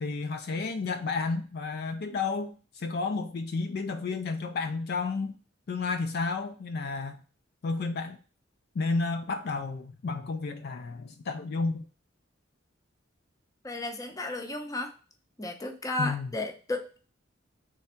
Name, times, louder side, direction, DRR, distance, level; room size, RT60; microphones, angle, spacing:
voice 1, 0.0-5.4 5.7-7.2 7.6-8.2 8.8-11.8 16.0-16.3, left 4 dB, 55° left, 0.4 m, -31 dB
voice 2, 13.6-14.9 15.4-17.0, left 2 dB, 20° left, 0.6 m, -33 dB
3.4 x 3.4 x 4.3 m
head